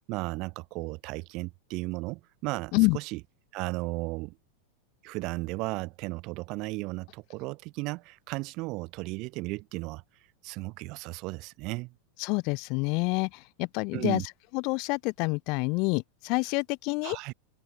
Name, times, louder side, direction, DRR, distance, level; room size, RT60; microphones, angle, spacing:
voice 1, 0.1-3.2 3.5-4.4 5.0-10.0 10.4-11.9 13.9-14.3 17.0-17.3, right 24 dB, 50° right, 3.3 m, -35 dB
voice 2, 12.2-14.2 14.5-17.2, left 30 dB, 50° left, 4.2 m, -27 dB
open air
hypercardioid pair, 95°, 0 cm